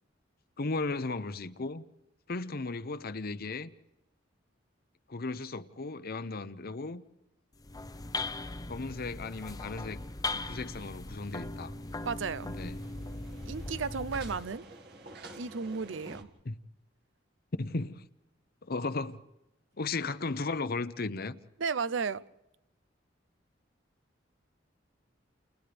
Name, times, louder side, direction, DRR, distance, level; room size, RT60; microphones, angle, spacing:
voice 1, 0.6-1.8 2.3-3.7 5.1-7.0 8.7-10.0 10.3-11.7 12.4-12.8 16.5-16.6 17.6-18.1 18.6-19.2 19.8-21.4, left 3 dB, 55° left, 0.8 m, -35 dB
sound 1, 7.5-14.5, left 2 dB, 20° left, 0.6 m, -39 dB
sound 2, 8.6-16.2, right 2 dB, 60° right, 2.0 m, -53 dB
voice 2, 12.0-12.5 13.5-14.7 15.4-16.3 21.6-22.3, right 5 dB, 85° right, 0.7 m, -34 dB
29.5 x 29.5 x 3.5 m
head